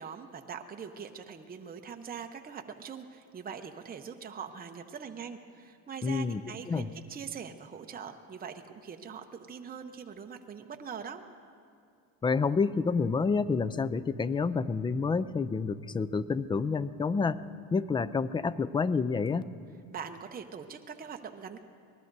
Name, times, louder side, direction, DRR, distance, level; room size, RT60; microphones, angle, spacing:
voice 1, 0.0-11.2 19.9-21.6, right 7 dB, 25° right, 5 dB, 0.8 m, -42 dB
voice 2, 6.0-6.4 6.7-6.9 12.2-17.4 17.7-19.4, left 4 dB, 15° left, 16 dB, 0.3 m, -28 dB
25.5 x 19.5 x 2.7 m, 2.4 s
supercardioid pair, 90°, 39 cm